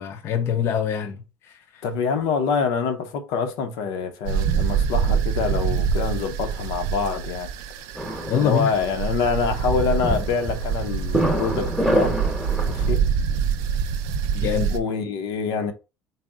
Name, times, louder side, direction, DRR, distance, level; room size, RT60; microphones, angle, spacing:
voice 1, 0.0-1.8 8.3-8.7 14.3-14.7, left 8 dB, 45° left, 0.5 m, -25 dB
voice 2, 1.8-7.5 8.4-12.2 12.6-13.0 14.7-15.7, left 5 dB, 85° left, 0.7 m, -26 dB
sound 1, 4.2-14.8, right 7 dB, 90° right, 0.4 m, -25 dB
sound 2, 7.9-12.9, right 1 dB, ahead, 0.8 m, -27 dB
4.1 x 2.0 x 3.5 m
cardioid pair, 145°, 6 cm